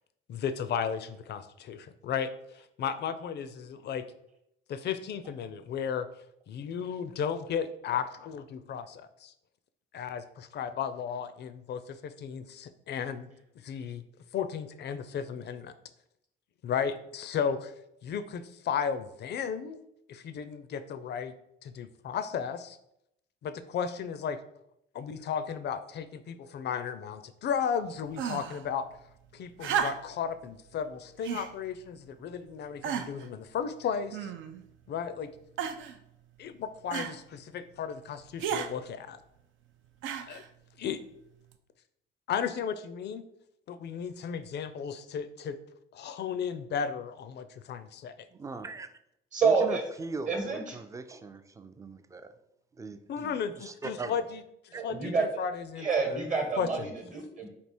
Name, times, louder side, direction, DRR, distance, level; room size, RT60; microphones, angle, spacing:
voice 1, 0.3-4.0 4.7-6.1 6.5-9.3 9.9-13.3 13.6-14.0 14.3-15.7 16.6-17.7 18.0-19.8 20.1-21.3 21.6-22.8 23.4-24.4 24.9-28.9 29.3-34.3 34.9-35.3 36.4-39.2 40.3-40.4 40.8-41.0 42.3-43.2 43.7-45.6 45.9-48.1 53.1-56.2 56.6-56.9, left 7 dB, 60° left, 12 dB, 0.4 m, -34 dB
sound 1, 28.1-28.6 29.6-30.3 31.2-31.5 32.3-32.4 32.8-33.3 34.1-34.7 35.6-36.0 36.9-37.2 38.4-38.7 40.0-40.5 41.5-41.6, right 8 dB, 75° right, 0.4 m, -33 dB
voice 2, 48.3-48.9 49.4-52.3 52.7-54.2 54.7-54.8, right 3 dB, 15° right, 10 dB, 0.3 m, -40 dB
voice 3, 49.3-49.8 50.3-50.8 54.7-55.2 55.7-57.5, right 4 dB, 40° right, 2 dB, 1.0 m, -28 dB
3.4 x 2.8 x 4.3 m, 0.78 s
cardioid pair, 90°, 20 cm